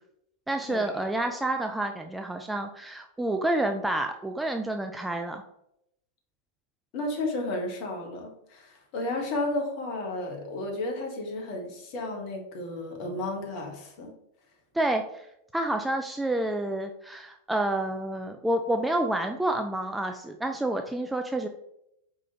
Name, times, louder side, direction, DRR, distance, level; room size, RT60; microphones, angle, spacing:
voice 1, 0.5-5.4 14.7-15.3 15.5-21.5, right 1 dB, 5° right, 4 dB, 0.3 m, -29 dB
voice 2, 6.9-14.1, left 2 dB, 40° left, 1 dB, 1.2 m, -33 dB
4.7 x 3.7 x 2.8 m, 0.77 s
figure-of-eight pair, 90°, 0 cm